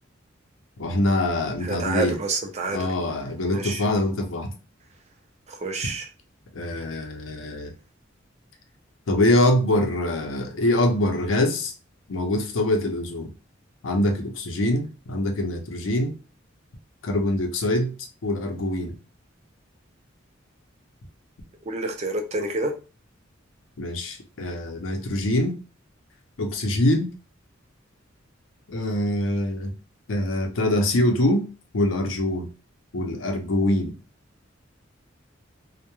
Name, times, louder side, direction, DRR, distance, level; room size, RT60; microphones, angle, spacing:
voice 1, 0.8-2.1 2.7-4.5 6.5-7.7 9.1-11.7 12.1-13.3 13.8-16.1 17.0-18.0 18.2-18.9 23.8-25.6 26.4-27.1 28.7-29.7 30.1-32.5 32.9-33.9, left 1 dB, 90° left, 4 dB, 0.6 m, -24 dB
voice 2, 1.6-2.9 3.5-3.8 5.5-6.1 21.7-22.8, right 2 dB, 35° right, 4 dB, 0.4 m, -28 dB
2.2 x 2.1 x 2.9 m, 0.34 s
head